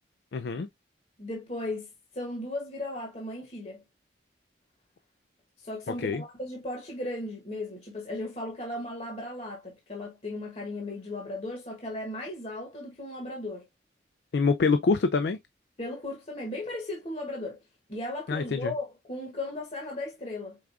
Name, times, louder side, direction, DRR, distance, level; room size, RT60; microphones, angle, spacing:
voice 1, 0.3-0.7 6.0-6.2 14.3-15.4 18.3-18.7, left 4 dB, 60° left, 0.4 m, -25 dB
voice 2, 1.2-1.9 2.1-3.8 5.6-13.7 15.8-17.6 17.9-20.6, left 1 dB, 35° left, 1.1 m, -36 dB
4.8 x 3.5 x 2.4 m
head